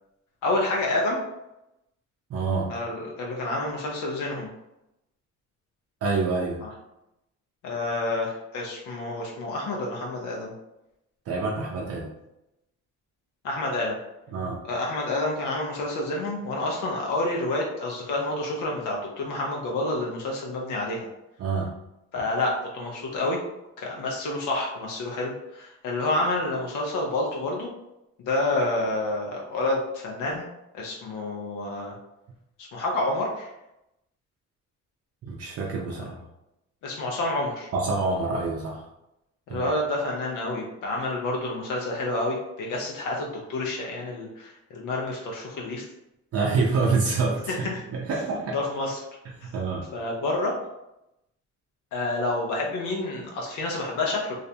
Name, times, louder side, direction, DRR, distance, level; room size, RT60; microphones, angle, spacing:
voice 1, 0.4-1.2 2.7-4.5 6.6-6.7 7.6-10.5 13.4-14.0 14.7-21.1 22.1-23.4 23.8-27.7 28.3-30.5 30.7-31.9 32.6-33.5 36.8-37.7 39.5-45.8 47.5-47.8 48.5-49.0 49.9-50.5 51.9-54.3, left 2 dB, 80° left, -1 dB, 0.6 m, -28 dB
voice 2, 2.3-2.7 6.0-6.6 11.3-12.1 14.3-14.6 21.4-21.7 35.2-36.2 37.7-38.8 39.5-39.7 46.3-48.6 49.4-49.9, right 4 dB, 55° right, -3 dB, 0.5 m, -27 dB
2.5 x 2.0 x 2.7 m, 0.89 s
cardioid pair, 90°, 30 cm